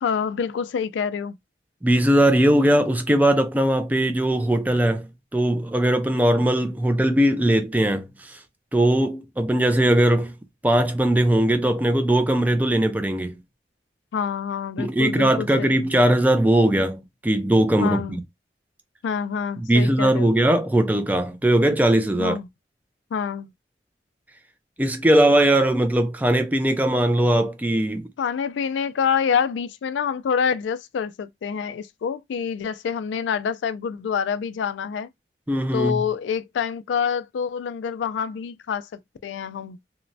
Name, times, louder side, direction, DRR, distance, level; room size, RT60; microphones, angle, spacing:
voice 1, 0.0-1.4 14.1-15.9 17.8-18.2 19.0-20.3 22.2-22.5 23.1-23.5 28.2-35.1 35.7-38.9 39.2-39.8, left 7 dB, 85° left, 0.3 m, -26 dB
voice 2, 1.8-8.4 8.7-10.3 10.6-13.4 14.8-18.2 19.6-22.4 24.8-28.1 35.5-36.0, right 1 dB, 10° right, 0.3 m, -20 dB
3.0 x 2.1 x 2.6 m
head